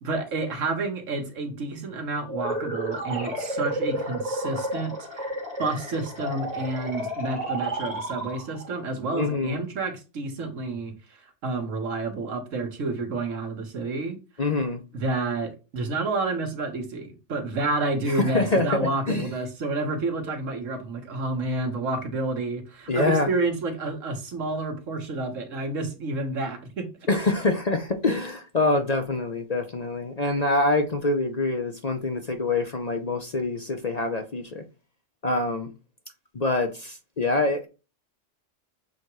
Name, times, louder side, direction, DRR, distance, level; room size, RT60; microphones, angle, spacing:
voice 1, 0.0-5.3 5.6-10.9 11.4-14.2 14.9-26.9, right 3 dB, 75° right, 1.5 m, -29 dB
sound 1, 2.3-8.8, right 1 dB, 30° right, 2.0 m, -31 dB
voice 2, 9.1-9.6 14.4-14.8 18.1-19.3 22.9-23.3 27.1-34.6 35.2-35.7 36.3-37.7, left 2 dB, 40° left, 0.6 m, -25 dB
7.1 x 2.9 x 4.6 m
omnidirectional pair, 1.3 m